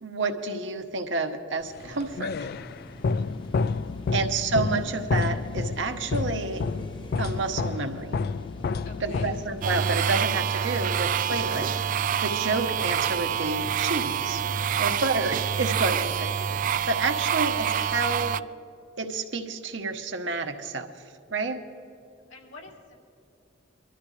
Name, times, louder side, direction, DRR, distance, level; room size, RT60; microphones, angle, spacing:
voice 1, 0.0-2.3 4.1-6.6 7.2-8.2 9.0-11.9 12.2-14.4 14.8-18.4 19.0-20.9 21.3-21.6, right 3 dB, 75° right, 5 dB, 1.1 m, -29 dB
sound 1, 1.8-9.9, left 4 dB, 55° left, 0.3 m, -30 dB
sound 2, 1.8-16.8, equal, 25° left, 0.9 m, -46 dB
voice 2, 8.8-9.3 22.3-23.0, left 3 dB, 80° left, -1 dB, 3.0 m, -49 dB
sound 3, 9.6-18.4, right 8 dB, 45° right, 0.3 m, -27 dB
23.0 x 13.0 x 3.3 m, 2.6 s
head